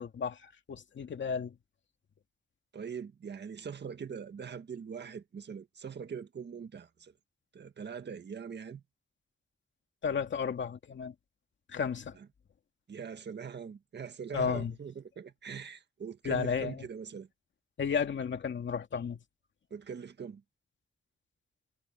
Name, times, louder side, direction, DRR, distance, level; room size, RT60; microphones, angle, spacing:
voice 1, 0.0-1.6 10.0-11.1 11.7-12.2 14.3-14.8 16.2-16.9 17.8-19.2, left 6 dB, 65° left, 2.3 m, -33 dB
voice 2, 2.7-7.1 7.5-8.8 12.1-12.3 12.9-17.3 19.7-20.4, right 6 dB, 55° right, 1.7 m, -42 dB
wide cardioid pair, 130°, 21 cm